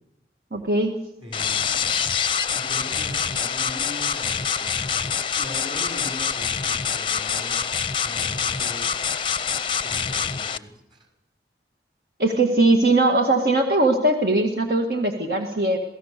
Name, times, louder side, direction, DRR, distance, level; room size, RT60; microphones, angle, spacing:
voice 1, 0.5-1.0 12.2-15.8, right 2 dB, 55° right, 2 dB, 2.0 m, -20 dB
voice 2, 1.2-2.0 2.5-7.6 8.0-8.9 9.8-11.1, left 1 dB, 25° right, 3 dB, 5.9 m, -40 dB
sound 1, 1.3-10.6, left 7 dB, 30° left, 0.7 m, -25 dB
28.0 x 17.5 x 6.7 m, 0.88 s
head